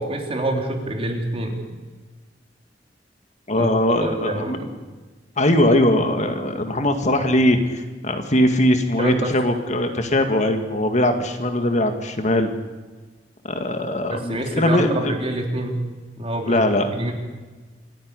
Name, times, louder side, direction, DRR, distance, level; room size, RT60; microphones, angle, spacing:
voice 1, 0.0-1.6 3.5-3.7 4.0-4.7 9.0-9.3 14.1-15.8 16.2-17.1, right 1 dB, 35° right, 2 dB, 3.5 m, -26 dB
voice 2, 3.5-4.6 5.4-12.5 13.4-15.2 16.5-16.9, left 1 dB, 45° left, 6 dB, 2.0 m, -20 dB
26.5 x 11.5 x 9.7 m, 1.3 s
head